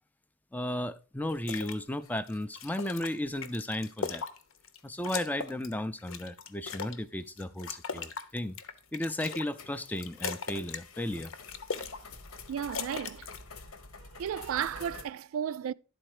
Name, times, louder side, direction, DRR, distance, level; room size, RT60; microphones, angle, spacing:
voice 1, 0.5-4.2 4.8-8.6 8.9-11.3, left 1 dB, 10° left, 0.4 m, -34 dB
sound 1, 1.3-1.8 2.2-4.8 5.0-7.0 7.4-9.5 9.8-10.8 11.1-12.0 12.3-13.4, left 5 dB, 70° left, 0.8 m, -39 dB
sound 2, 1.5-1.7 2.0-3.9 4.8-4.9 5.5-5.6 6.9-7.0 8.8-8.9 9.5-15.0, left 3 dB, 90° left, 1.1 m, -50 dB
voice 2, 12.5-13.3 14.0-15.7, right 8 dB, 70° right, 0.3 m, -34 dB
11.0 x 4.3 x 4.8 m
head